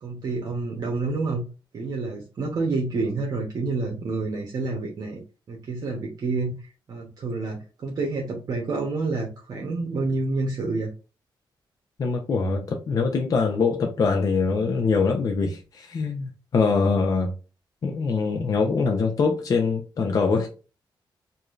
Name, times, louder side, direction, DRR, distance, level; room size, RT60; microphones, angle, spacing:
voice 1, 0.0-1.4 1.7-5.2 5.5-6.5 6.9-10.9, right 3 dB, 50° right, 0.9 m, -28 dB
voice 2, 12.0-17.3 17.8-20.5, left 4 dB, 45° left, 0.6 m, -23 dB
4.8 x 2.7 x 2.5 m
wide cardioid pair, 160°, 8 cm